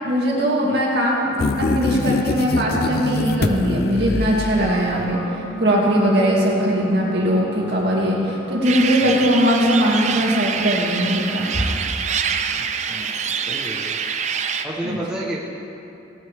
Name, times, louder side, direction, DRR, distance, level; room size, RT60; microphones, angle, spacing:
voice 1, 0.0-5.2 5.6-11.8 14.8-15.0, equal, 60° right, -4 dB, 2.5 m, -20 dB
sound 1, 1.4-5.1, left 2 dB, 55° left, 0.5 m, -23 dB
sound 2, 4.6-11.8, right 3 dB, 30° left, 1.4 m, -36 dB
sound 3, 8.6-14.6, right 6 dB, 40° right, 0.5 m, -25 dB
voice 2, 12.5-14.0 14.6-15.4, right 1 dB, 5° right, -6 dB, 1.1 m, -32 dB
19.0 x 9.3 x 3.6 m, 2.8 s
head